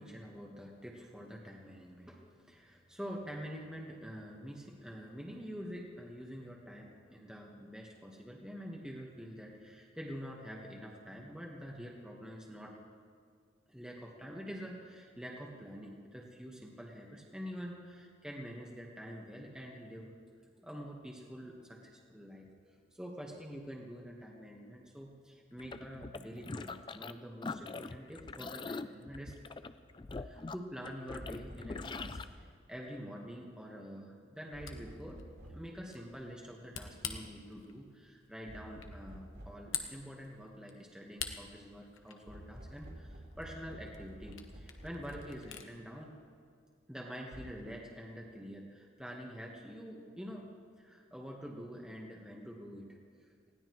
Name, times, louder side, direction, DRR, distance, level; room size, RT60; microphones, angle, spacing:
voice 1, 0.0-12.8 13.7-20.1 20.6-29.3 30.2-46.1 46.9-50.5 50.8-53.5, equal, 5° right, -1 dB, 1.3 m, -46 dB
sound 1, 25.6-27.1 27.4-32.2, left 3 dB, 25° left, 0.3 m, -43 dB
sound 2, 31.2-32.3 34.5-35.8 38.5-39.7 42.3-45.4 47.3-47.5, equal, 55° right, 3.0 m, -50 dB
Camera, 34.4-45.7, left 8 dB, 80° left, 1.1 m, -48 dB
20.0 x 16.0 x 3.1 m, 2.2 s
head